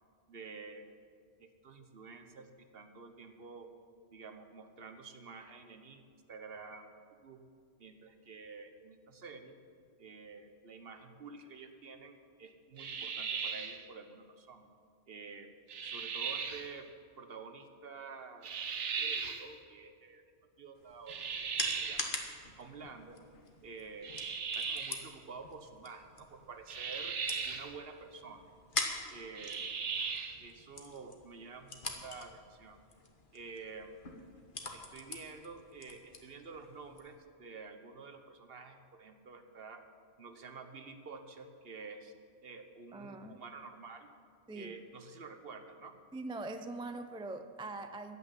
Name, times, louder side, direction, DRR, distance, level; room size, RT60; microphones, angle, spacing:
voice 1, 0.3-1.0 1.4-3.7 4.1-6.0 6.3-6.9 7.2-7.4 7.8-9.6 10.0-14.6 15.1-15.5 15.8-16.9 17.2-18.5 19.0-20.3 20.6-21.3 21.6-22.1 22.5-23.2 23.6-27.2 27.4-28.4 29.1-29.8 30.4-32.8 33.3-34.0 34.7-39.8 40.2-42.1 42.4-44.1 44.5-45.9, right 4 dB, 55° right, 7 dB, 1.2 m, -49 dB
sound 1, 12.8-13.8 15.7-16.7 18.4-19.5 21.1-22.2 24.0-25.1 26.7-27.7 29.4-30.4, right 6 dB, 85° right, 1.2 m, -37 dB
sound 2, 20.7-37.1, left 3 dB, 50° left, 1.4 m, -44 dB
voice 2, 42.9-43.4 44.5-44.8 46.1-48.2, right 2 dB, 10° right, 7 dB, 0.3 m, -42 dB
15.0 x 6.0 x 9.9 m, 2.1 s
omnidirectional pair, 1.2 m